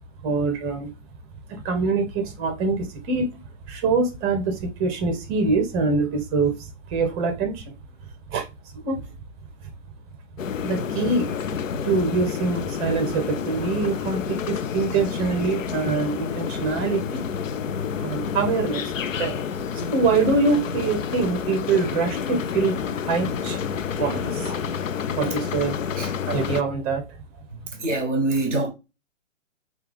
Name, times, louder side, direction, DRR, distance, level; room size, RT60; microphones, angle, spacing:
voice 1, 0.2-0.9 1.5-3.3 3.7-7.8 8.3-8.5 8.7-9.0 10.6-11.3 11.8-17.3 18.0-18.9 19.2-19.4 19.7-23.6 24.0-24.6 25.2-25.8 26.3-27.0, right 4 dB, 15° right, 0.7 m, -24 dB
sound 1, 10.4-26.6, left 7 dB, 85° left, 0.5 m, -29 dB
voice 2, 27.5-28.7, right 2 dB, 10° left, 0.3 m, -25 dB
5.7 x 2.3 x 3.3 m
hypercardioid pair, 135°, 38 cm